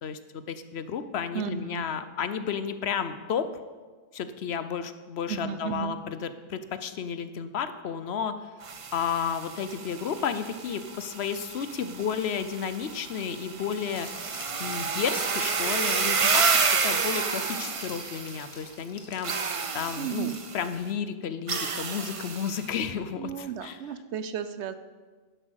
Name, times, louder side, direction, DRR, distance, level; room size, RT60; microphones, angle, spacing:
voice 1, 0.0-3.5 4.1-8.4 8.9-14.2 14.6-16.5 16.8-19.3 19.7-23.8, left 7 dB, 70° left, 11 dB, 1.0 m, -32 dB
voice 2, 1.3-1.8 5.3-6.0 20.0-20.4 23.1-24.8, right 8 dB, 80° right, 11 dB, 1.0 m, -33 dB
sound 1, 8.6-18.6 19.2-20.7 21.5-22.7, right 5 dB, 35° right, 0.6 m, -30 dB
Glass, 13.7-20.7 21.0-21.1, left 3 dB, 55° left, 1.4 m, -48 dB
11.0 x 7.8 x 6.4 m, 1.4 s
omnidirectional pair, 1.1 m